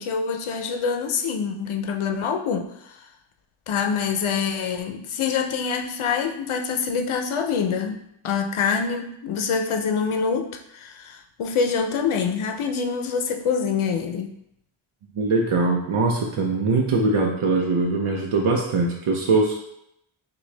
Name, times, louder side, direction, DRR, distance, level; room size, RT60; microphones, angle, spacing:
voice 1, 0.0-3.0 3.7-14.4, left 6 dB, 75° left, 4 dB, 0.6 m, -25 dB
voice 2, 15.2-19.6, right 3 dB, 80° right, -1 dB, 0.7 m, -22 dB
6.0 x 2.3 x 3.2 m, 0.77 s
wide cardioid pair, 140°, 50 cm